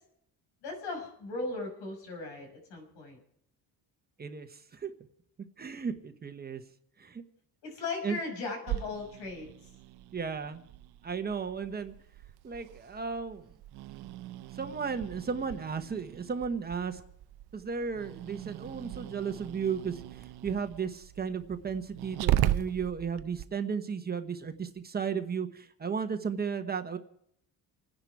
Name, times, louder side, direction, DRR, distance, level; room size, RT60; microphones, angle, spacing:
voice 1, 0.6-3.2 7.6-9.7, left 3 dB, 85° left, 2 dB, 6.4 m, -38 dB
voice 2, 4.2-4.9 5.6-6.6 7.0-7.2 8.0-8.2 10.1-10.6 11.0-11.9 12.4-13.5 14.5-17.0 17.5-27.0, right 6 dB, 25° right, 7 dB, 1.1 m, -34 dB
Growling, 8.7-23.5, right 13 dB, 70° right, 0.7 m, -37 dB
28.5 x 10.5 x 4.7 m, 0.72 s
cardioid pair, 155°, 40 cm